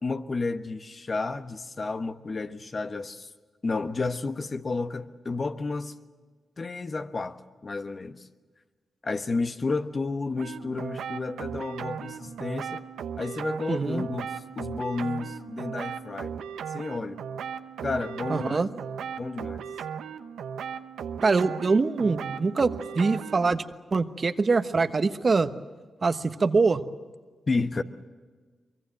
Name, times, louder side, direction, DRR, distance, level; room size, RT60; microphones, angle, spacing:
voice 1, 0.0-3.3 3.6-6.0 6.6-8.3 9.0-12.8 13.2-16.3 16.7-17.2 17.8-18.7 19.2-19.6 27.5-27.8, left 3 dB, 50° left, 1.3 m, -31 dB
sound 1, 10.4-23.5, right 7 dB, 85° right, 0.9 m, -37 dB
voice 2, 13.7-14.0 18.3-18.7 21.2-23.6 23.9-25.5 26.0-26.8, right 4 dB, 50° right, 1.2 m, -24 dB
23.5 x 23.0 x 7.8 m
supercardioid pair, 40°, 0 cm